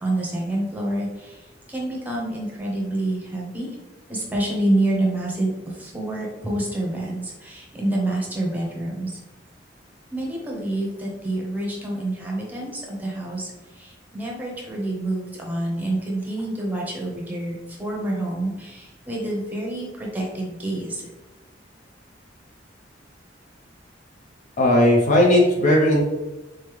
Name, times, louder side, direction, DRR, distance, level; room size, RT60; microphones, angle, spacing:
voice 1, 0.0-3.7 4.1-9.1 10.1-21.0, right 1 dB, 10° right, -3 dB, 0.9 m, -27 dB
voice 2, 24.6-26.0, left 1 dB, 45° left, -1 dB, 0.6 m, -16 dB
3.8 x 3.2 x 3.4 m, 1.1 s
head